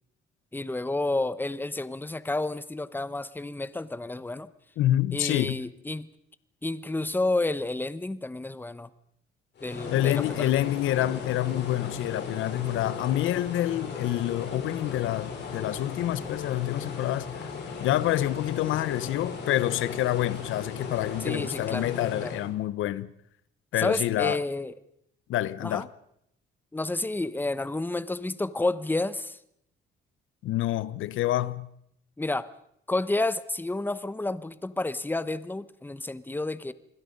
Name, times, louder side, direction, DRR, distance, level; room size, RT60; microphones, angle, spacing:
voice 1, 0.5-4.5 5.1-6.1 6.6-8.9 9.6-10.5 21.2-22.4 23.8-24.7 25.6-25.9 26.7-29.4 32.2-32.5 32.9-36.7, left 2 dB, 10° left, 1.1 m, -30 dB
voice 2, 4.8-5.6 9.9-17.4 17.8-23.1 23.7-24.4 25.3-25.9 30.4-31.7, left 14 dB, 85° left, 0.9 m, -27 dB
sound 1, 9.6-22.5, left 4 dB, 60° left, 7.5 m, -37 dB
28.5 x 21.0 x 5.3 m
cardioid pair, 90°, 20 cm